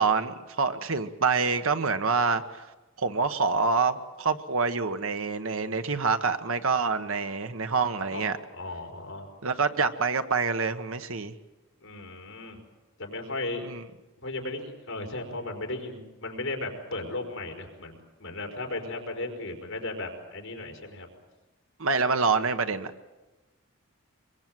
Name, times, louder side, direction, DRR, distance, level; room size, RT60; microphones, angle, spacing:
voice 1, 0.0-2.7 3.0-8.4 9.4-11.3 13.6-13.8 21.8-23.1, right 4 dB, 80° right, 9 dB, 1.3 m, -26 dB
voice 2, 8.1-9.3 11.8-12.6 13.0-13.7 14.2-21.1, left 2 dB, 70° left, 2 dB, 4.7 m, -36 dB
24.0 x 23.0 x 7.8 m, 1.1 s
head